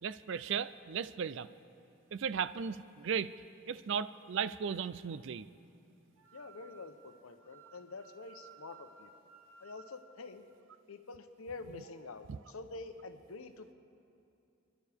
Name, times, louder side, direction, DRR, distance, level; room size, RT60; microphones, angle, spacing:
voice 1, 0.0-1.5 2.1-3.3 3.7-5.5 12.3-12.4, right 7 dB, 60° right, 15 dB, 0.4 m, -36 dB
Wind instrument woodwind instrument, 6.2-9.9, right 6 dB, 85° right, 1.8 m, -58 dB
voice 2, 6.3-9.1 9.6-10.4 10.9-13.7, left 3 dB, 85° left, 8 dB, 0.9 m, -47 dB
28.5 x 11.5 x 3.5 m, 2.7 s
head